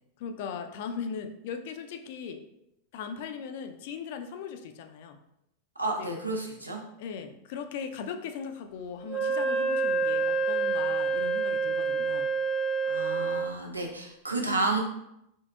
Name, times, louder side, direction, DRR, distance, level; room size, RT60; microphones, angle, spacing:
voice 1, 0.2-2.4 2.9-5.2 6.0-6.1 7.0-12.3, left 6 dB, 50° left, 7 dB, 0.4 m, -38 dB
voice 2, 5.8-6.8 12.9-14.8, right 2 dB, 80° right, 1 dB, 0.7 m, -31 dB
Wind instrument woodwind instrument, 9.1-13.5, right 4 dB, 10° right, 0.9 m, -27 dB
4.4 x 3.5 x 2.3 m, 0.82 s
figure-of-eight pair, 90°, 0 cm